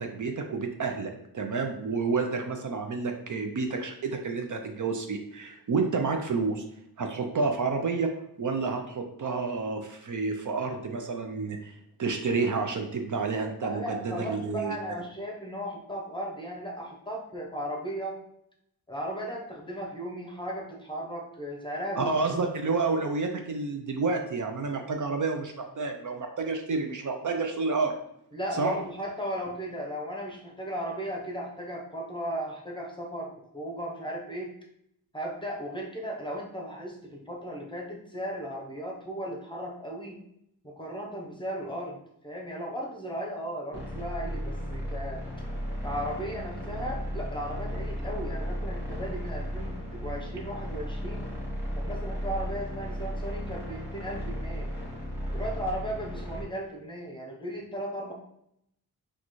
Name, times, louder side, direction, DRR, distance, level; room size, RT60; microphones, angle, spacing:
voice 1, 0.0-6.6 7.0-8.1 8.4-11.7 12.0-14.8 22.0-27.9 28.5-28.7, right 4 dB, 55° right, 4 dB, 0.5 m, -29 dB
voice 2, 13.6-18.2 18.9-22.4 28.3-34.5 35.1-40.2 40.6-45.2 45.8-51.3 51.7-54.7 55.3-58.1, equal, 15° left, -1 dB, 0.8 m, -36 dB
sound 1, 43.7-56.4, equal, 5° right, 1.3 m, -35 dB
6.2 x 2.3 x 3.1 m, 0.76 s
wide cardioid pair, 145°, 38 cm